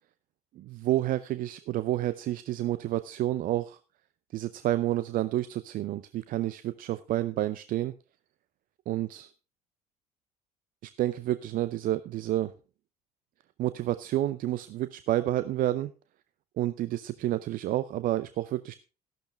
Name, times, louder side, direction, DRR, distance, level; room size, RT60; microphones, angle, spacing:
voice 1, 0.5-3.8 4.3-7.9 8.9-9.3 10.8-12.5 13.6-15.9 16.6-18.8, right 14 dB, 45° right, 14 dB, 0.6 m, -29 dB
13.5 x 12.0 x 3.3 m, 0.32 s
figure-of-eight pair, 60°, 19 cm